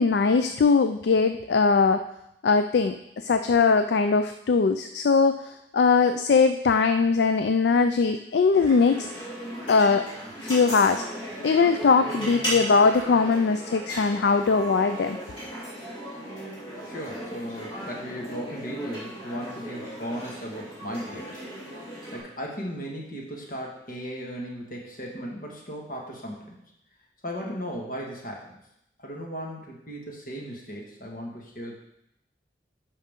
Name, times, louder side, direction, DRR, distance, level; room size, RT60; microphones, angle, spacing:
voice 1, 0.0-2.0 2.4-9.1 9.7-10.1 10.4-11.0 11.4-15.2, left 4 dB, 65° left, 8 dB, 0.4 m, -21 dB
sound 1, 8.5-22.2, right 1 dB, 25° left, 2.9 m, -36 dB
voice 2, 16.8-21.5 22.1-26.6 27.2-28.6 29.0-31.7, equal, 50° left, -1 dB, 1.8 m, -36 dB
11.0 x 5.5 x 3.7 m, 0.81 s
head